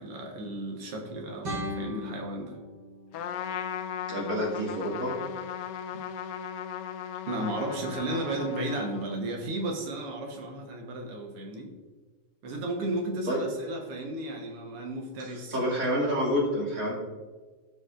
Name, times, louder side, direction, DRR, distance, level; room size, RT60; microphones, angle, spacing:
voice 1, 0.0-2.6 7.3-11.7 12.4-15.6, right 1 dB, 90° right, 3 dB, 2.2 m, -34 dB
sound 1, 1.4-4.4, left 1 dB, 75° right, 3.9 m, -39 dB
Trumpet, 3.1-9.3, left 8 dB, 90° left, 0.9 m, -37 dB
voice 2, 4.1-5.2 13.3-13.4 15.5-16.9, equal, 40° right, -4 dB, 2.6 m, -28 dB
16.0 x 5.5 x 2.5 m, 1.4 s
omnidirectional pair, 2.4 m